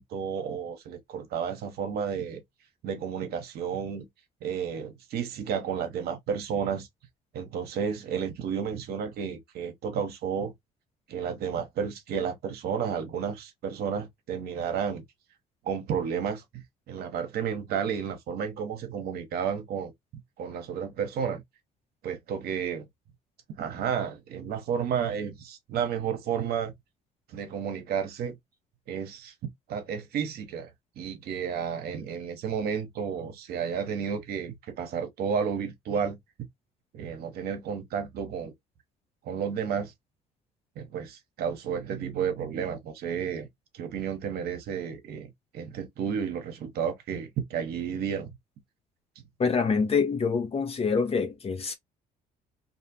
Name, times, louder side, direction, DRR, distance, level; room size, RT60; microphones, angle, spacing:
voice 1, 0.0-2.4 2.8-4.1 4.4-6.9 7.3-10.5 11.1-15.0 15.6-19.9 20.4-21.4 22.0-22.9 23.6-26.7 27.3-28.4 28.9-29.3 29.7-30.7 31.0-36.2 36.9-38.5 39.2-39.9 40.8-43.5 43.7-45.3 45.5-48.3, right 7 dB, 65° right, 1.0 m, -32 dB
voice 2, 49.4-51.8, left 5 dB, 35° left, 0.9 m, -26 dB
2.6 x 2.4 x 2.8 m
supercardioid pair, 70°, 17 cm